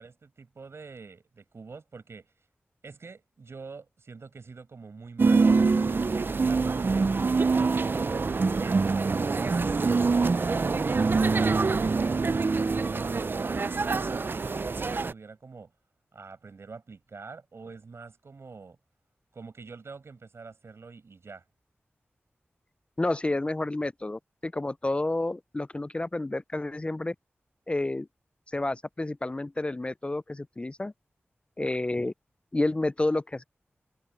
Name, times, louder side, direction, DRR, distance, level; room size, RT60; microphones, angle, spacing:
voice 1, 0.0-2.3 2.8-7.1 7.5-8.0 8.6-10.7 11.4-12.1 12.5-12.9 13.1-15.7 16.1-18.8 19.3-21.4, right 4 dB, 75° right, 6.6 m, -46 dB
sound 1, 5.2-15.1, right 4 dB, 50° right, 0.4 m, -25 dB
voice 2, 23.0-27.1 27.7-28.1 28.5-30.9 31.6-32.1 32.5-33.4, left 2 dB, 25° left, 0.3 m, -30 dB
cardioid pair, 55°, 4 cm